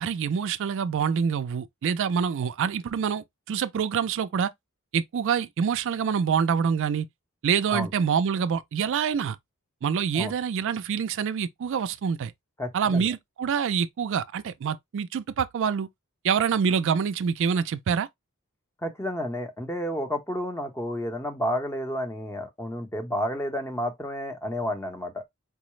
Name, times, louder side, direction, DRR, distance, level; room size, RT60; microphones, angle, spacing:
voice 1, 0.0-4.5 4.9-7.1 7.4-9.4 9.8-12.3 12.7-15.9 16.2-18.1, right 7 dB, 60° right, 0.3 m, -26 dB
voice 2, 12.6-13.1 18.8-25.2, equal, 10° left, 0.7 m, -31 dB
4.5 x 2.0 x 3.1 m
head